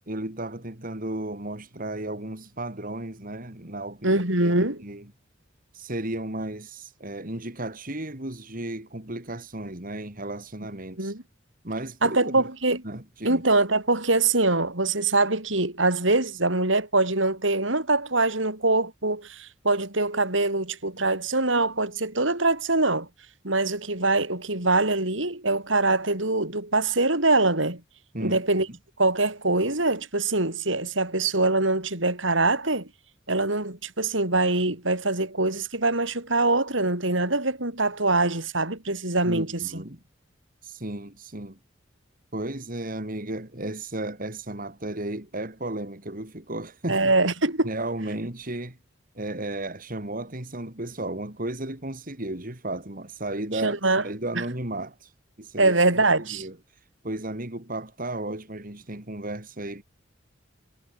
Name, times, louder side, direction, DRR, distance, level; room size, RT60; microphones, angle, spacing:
voice 1, 0.0-5.1 5.7-11.1 11.6-12.5 12.8-13.4 28.1-28.4 28.7-28.8 39.2-40.0 40.6-41.6 42.3-47.1 47.6-48.8 49.2-53.8 54.0-55.1 55.4-55.8 56.2-56.6 57.0-59.8, right 1 dB, 45° right, 3.7 m, -34 dB
voice 2, 4.0-4.8 11.0-11.2 12.0-12.8 13.2-23.1 23.4-27.8 28.2-28.7 29.0-32.9 33.3-39.8 46.9-47.7 53.6-54.0 54.4-54.5 55.6-56.5, right 2 dB, 80° right, 7.3 m, -23 dB
head